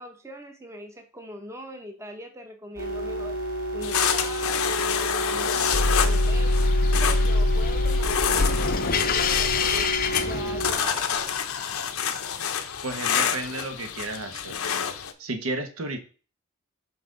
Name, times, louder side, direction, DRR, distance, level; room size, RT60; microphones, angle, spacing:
voice 1, 0.0-3.4 3.7-6.6 7.0-9.9 10.2-11.4, equal, 15° right, 5 dB, 0.7 m, -41 dB
sound 1, 2.8-10.7, right 1 dB, 40° right, 3.4 m, -31 dB
sound 2, 3.8-15.1, left 7 dB, 85° left, 0.7 m, -28 dB
sound 3, 5.7-11.0, left 3 dB, 40° left, 0.5 m, -24 dB
voice 2, 12.8-14.6 15.2-16.0, right 2 dB, 80° right, 7 dB, 1.1 m, -32 dB
5.7 x 5.2 x 3.9 m, 0.37 s
head